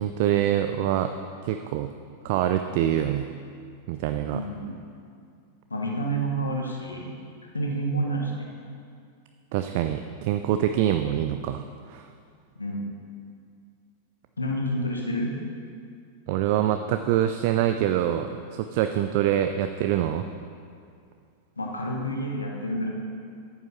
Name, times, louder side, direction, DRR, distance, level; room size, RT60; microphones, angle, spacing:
voice 1, 0.0-1.9 2.2-3.3 3.9-4.4 9.5-11.6 11.9-12.1 16.3-20.3, right 11 dB, 50° right, 8 dB, 0.3 m, -25 dB
voice 2, 4.3-4.8 5.7-7.1 7.5-8.5 12.5-12.9 14.4-15.3 21.6-22.9, right 1 dB, 80° left, -1 dB, 1.1 m, -29 dB
9.0 x 5.5 x 5.8 m, 2.3 s
figure-of-eight pair, 90°, 0 cm